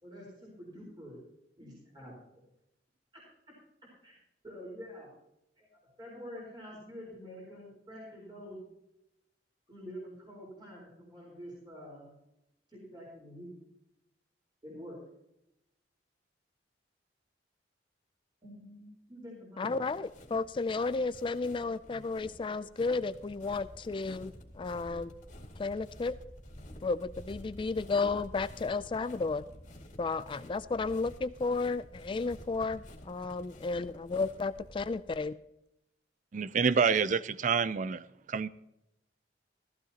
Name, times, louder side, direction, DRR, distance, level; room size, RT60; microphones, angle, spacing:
voice 1, 0.0-1.2 1.6-2.1 3.1-3.2 4.0-4.1 4.4-5.1 5.6-8.6 9.7-12.1 12.7-13.5 14.6-15.0 18.4-19.9, equal, 25° right, 4.2 m, -47 dB
voice 2, 19.6-25.1 25.6-26.2 26.8-29.4 30.0-35.3, left 3 dB, 30° left, 0.3 m, -33 dB
sound 1, 19.8-35.2, equal, 45° left, 2.2 m, -51 dB
voice 3, 36.3-38.5, right 6 dB, 45° right, 0.4 m, -28 dB
15.0 x 14.5 x 2.9 m
head